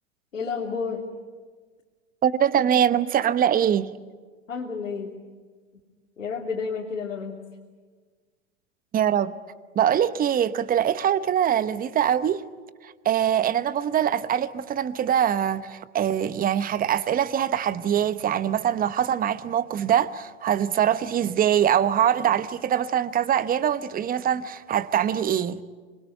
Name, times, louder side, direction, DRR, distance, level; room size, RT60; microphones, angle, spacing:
voice 1, 0.3-1.0 4.5-5.1 6.2-7.4, left 5 dB, 85° left, 3.0 m, -30 dB
voice 2, 2.2-3.9 8.9-9.4 9.7-12.4 12.8-25.6, right 9 dB, 20° right, 1.0 m, -23 dB
26.0 x 22.5 x 9.2 m
hypercardioid pair, 100°, 38 cm